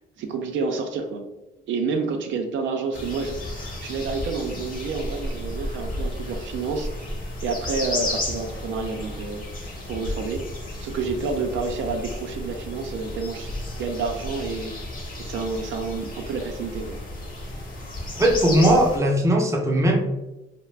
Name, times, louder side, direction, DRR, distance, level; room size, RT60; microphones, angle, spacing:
voice 1, 0.2-1.3 1.7-6.9 7.4-9.4 9.9-10.5 10.8-13.5 13.8-14.7 15.2-17.0, right 4 dB, 70° right, 4 dB, 0.4 m, -29 dB
sound 1, 2.9-19.0, left 1 dB, 45° left, 0.8 m, -33 dB
voice 2, 18.2-20.0, right 1 dB, 15° right, 0 dB, 0.5 m, -19 dB
2.3 x 2.0 x 3.2 m, 0.98 s
cardioid pair, 90°, 20 cm